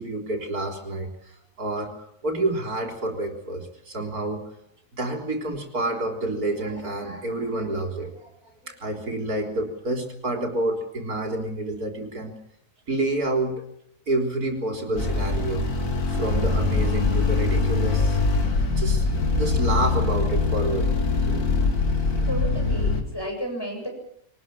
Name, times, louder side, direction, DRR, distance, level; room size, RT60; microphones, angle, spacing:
voice 1, 0.0-4.4 4.9-8.3 8.6-12.4 12.9-13.6 14.1-15.6 16.1-18.2 18.8-19.1 19.4-20.9 21.3-21.4, right 2 dB, 65° right, 3 dB, 4.2 m, -28 dB
sound 1, 15.0-23.0, left 3 dB, 70° left, 2.9 m, -23 dB
voice 2, 22.2-23.9, equal, 15° left, 1 dB, 7.9 m, -32 dB
23.0 x 20.0 x 7.5 m, 0.73 s
omnidirectional pair, 1.7 m